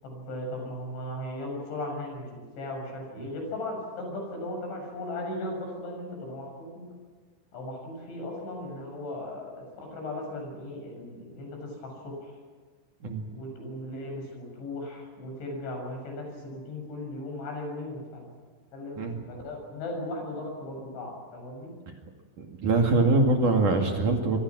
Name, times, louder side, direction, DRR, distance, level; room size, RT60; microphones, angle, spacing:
voice 1, 0.0-6.9 7.5-12.4 13.3-18.3 18.7-19.0 19.3-21.7, left 1 dB, 75° left, 2 dB, 9.5 m, -37 dB
voice 2, 22.4-24.4, right 3 dB, 50° right, 2 dB, 3.3 m, -23 dB
26.5 x 25.5 x 6.3 m, 1.5 s
omnidirectional pair, 5.3 m